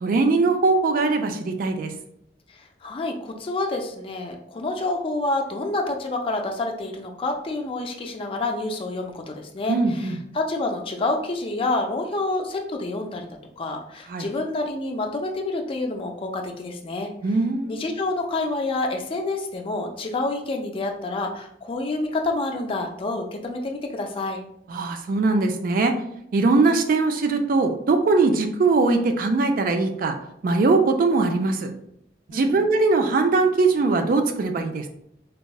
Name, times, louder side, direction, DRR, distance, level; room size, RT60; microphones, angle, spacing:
voice 1, 0.0-1.9 9.7-10.2 14.1-14.3 17.2-17.8 24.7-25.9 26.3-30.2 30.4-31.7 32.3-34.9, right 3 dB, 50° right, 6 dB, 0.3 m, -21 dB
voice 2, 2.5-13.3 13.6-17.1 17.7-24.4 32.3-32.6, left 2 dB, 30° left, 3 dB, 0.4 m, -28 dB
3.4 x 2.0 x 2.3 m, 0.75 s
head